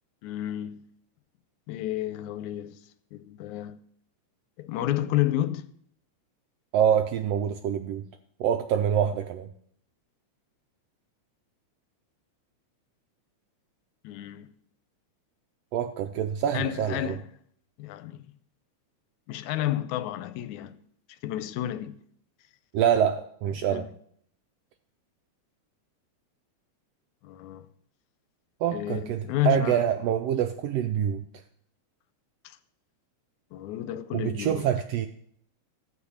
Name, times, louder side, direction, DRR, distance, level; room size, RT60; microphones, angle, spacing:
voice 1, 0.2-0.9 1.7-2.8 3.1-3.8 4.6-5.7 14.0-14.5 16.5-17.2 17.8-18.2 19.3-20.8 21.2-22.0 23.7-23.9 27.2-27.7 28.7-29.8 32.4-32.6 33.5-34.7, left 13 dB, 90° left, 2.0 m, -31 dB
voice 2, 6.7-8.0 8.4-9.5 15.7-17.2 22.7-23.9 28.6-31.2 34.1-35.1, right 9 dB, 80° right, 1.4 m, -26 dB
14.0 x 4.8 x 8.4 m
omnidirectional pair, 3.4 m